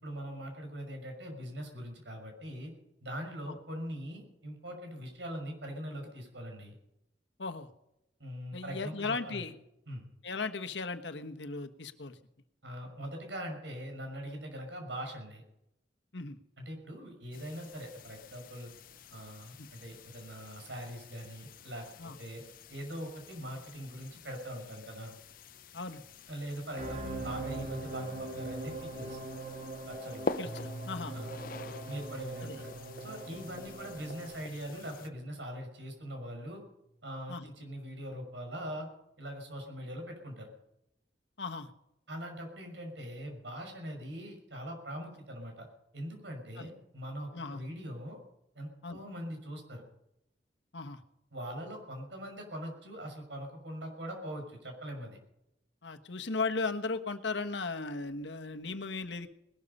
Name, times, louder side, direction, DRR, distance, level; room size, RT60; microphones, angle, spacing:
voice 1, 0.0-2.7 3.0-6.8 8.2-9.4 9.9-10.1 12.6-15.4 16.6-18.7 19.1-22.4 22.7-25.1 26.3-29.2 29.9-30.3 31.1-31.3 31.8-32.7 33.0-36.6 37.0-38.9 39.2-40.5 42.1-45.7 45.9-48.2 48.6-49.8 51.3-55.2, equal, 85° right, 4 dB, 6.0 m, -42 dB
voice 2, 7.4-7.7 8.5-9.5 10.2-12.2 16.1-16.4 19.6-19.7 22.0-22.2 25.7-26.0 30.4-31.1 31.7-31.8 32.4-32.6 37.3-37.5 41.4-41.7 46.6-46.7 47.3-47.6 48.8-49.0 50.7-51.0 55.8-59.3, left 4 dB, 85° left, 8 dB, 1.3 m, -37 dB
sound 1, 17.3-35.1, left 4 dB, 50° left, 0.8 m, -47 dB
sound 2, 26.8-34.4, right 2 dB, 45° right, 2.6 m, -42 dB
Piano, 30.4-36.1, right 1 dB, 15° left, 1.5 m, -48 dB
20.0 x 12.5 x 5.5 m, 0.83 s
head